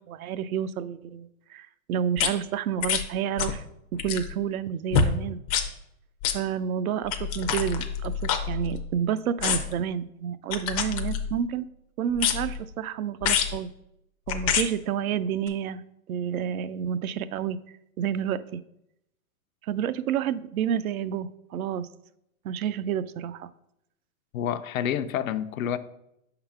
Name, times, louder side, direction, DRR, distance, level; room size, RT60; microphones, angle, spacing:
voice 1, 0.0-3.6 4.0-5.4 6.3-8.1 8.5-11.7 12.0-13.7 14.3-15.8 16.1-17.6 18.0-18.6 19.7-21.9 22.4-23.5, right 8 dB, 75° right, 0.6 m, -29 dB
sound 1, 2.2-2.3 2.8-3.1 3.4-3.6 3.9-4.3 4.9-5.1 5.5-5.7 6.2-6.4 7.1-9.0 9.4-9.8 10.5-11.5 12.2-12.6 13.2-13.6 14.3-14.7 15.5-15.6, left 7 dB, 25° left, 0.5 m, -27 dB
voice 2, 24.3-25.8, left 10 dB, 70° left, 0.6 m, -28 dB
5.6 x 3.9 x 5.7 m
hypercardioid pair, 145°, 42 cm